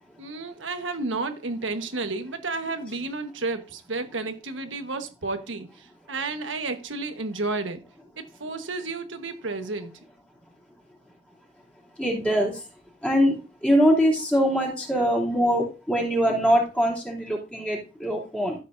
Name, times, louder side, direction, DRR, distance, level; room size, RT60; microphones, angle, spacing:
voice 1, 0.2-7.8 8.2-9.9, right 3 dB, 70° right, 1.3 m, -31 dB
voice 2, 12.0-12.5 13.0-13.4 13.6-18.5, equal, 5° left, 3.1 m, -22 dB
13.5 x 7.5 x 2.7 m
head